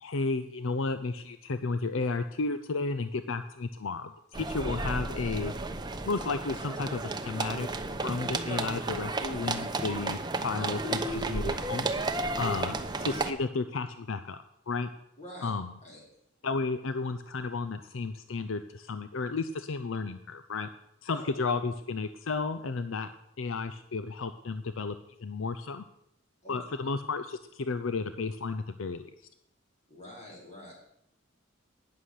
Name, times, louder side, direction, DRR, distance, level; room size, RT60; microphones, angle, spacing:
voice 1, 0.0-5.5 6.1-7.7 8.0-11.9 12.4-14.9 15.4-15.7 16.4-20.7 21.0-23.1 23.4-25.8 26.5-29.1, left 4 dB, 75° left, 10 dB, 0.6 m, -33 dB
sound 1, 4.3-13.3, right 3 dB, 20° right, 0.8 m, -33 dB
voice 2, 15.2-15.5 15.8-16.0 21.1-21.2 26.4-26.6 29.9-30.7, left 1 dB, 35° left, -3 dB, 5.1 m, -46 dB
11.5 x 9.6 x 6.6 m, 0.80 s
head